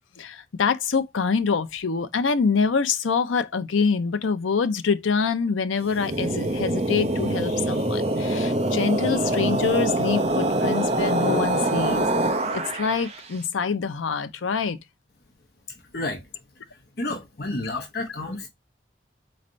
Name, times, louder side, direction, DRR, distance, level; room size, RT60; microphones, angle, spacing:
voice 1, 0.2-12.1 12.5-14.8, left 5 dB, 90° left, 0.6 m, -25 dB
sound 1, 5.8-13.2, right 1 dB, 35° right, 0.5 m, -24 dB
voice 2, 15.7-16.2 16.7-18.5, left 2 dB, 50° left, 0.9 m, -31 dB
4.1 x 3.2 x 2.5 m
head